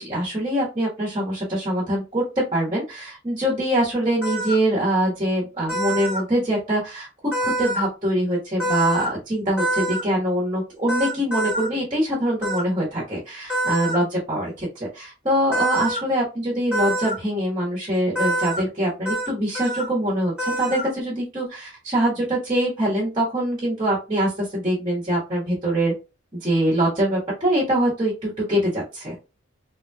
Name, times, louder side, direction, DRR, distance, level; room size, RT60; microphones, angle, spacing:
voice 1, 0.0-7.1 7.4-25.9 26.4-29.1, right 1 dB, 25° right, -5 dB, 1.4 m, -24 dB
sound 1, 4.2-4.6 5.7-6.2 7.3-7.9 8.6-9.1 9.6-10.0 10.9-11.7 12.4-12.6 13.5-14.0 15.5-16.0 16.7-17.2 18.2-18.6 19.1-19.3 19.5-19.9 20.4-20.9, right 1 dB, 5° right, 1.6 m, -25 dB
3.6 x 3.2 x 2.3 m, 0.29 s
head